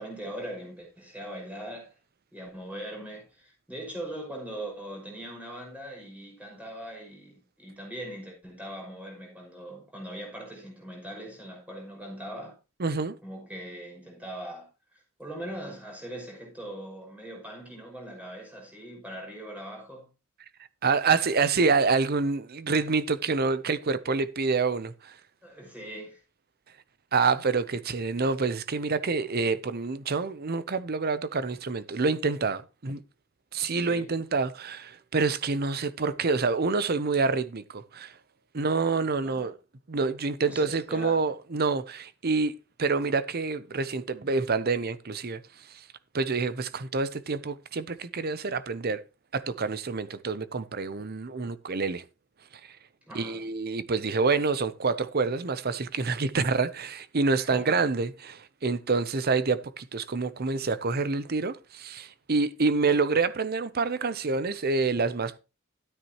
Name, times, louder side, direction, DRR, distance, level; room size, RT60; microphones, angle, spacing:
voice 1, 0.0-1.9 2.3-12.6 13.2-14.7 15.2-20.1 25.4-26.2 33.8-34.1 39.2-39.5 40.4-41.3 53.1-53.4 57.3-57.7, right 1 dB, 5° right, 5.6 m, -41 dB
voice 2, 12.8-13.2 20.8-25.1 27.1-33.0 33.5-38.1 38.5-39.5 39.9-45.4 46.1-49.0 49.3-52.0 53.1-65.4, right 4 dB, 45° right, 0.7 m, -27 dB
13.0 x 9.4 x 3.0 m
head